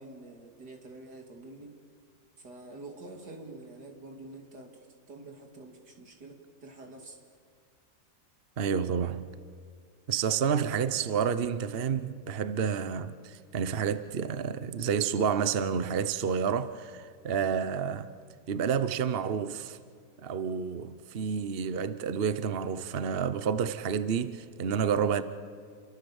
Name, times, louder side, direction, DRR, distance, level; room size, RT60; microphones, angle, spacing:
voice 1, 0.0-1.8 2.4-7.2, right 2 dB, 85° right, 3.3 m, -47 dB
voice 2, 8.6-9.3 10.1-18.1 18.5-19.8 20.2-25.2, right 7 dB, 45° right, 1.0 m, -29 dB
28.5 x 24.0 x 7.2 m
omnidirectional pair, 1.7 m